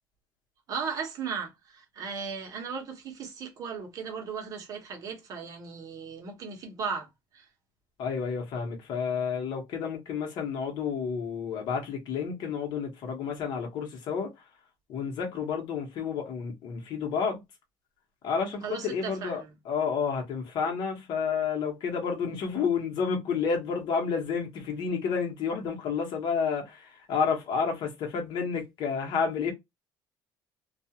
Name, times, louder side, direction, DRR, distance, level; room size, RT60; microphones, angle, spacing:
voice 1, 0.7-7.1 7.3-7.5 18.6-19.5, right 6 dB, 45° right, 0.9 m, -36 dB
voice 2, 8.0-14.3 14.9-17.4 18.2-29.5, left 6 dB, 60° left, 1.0 m, -30 dB
2.4 x 2.4 x 2.8 m
cardioid pair, 160°, 8 cm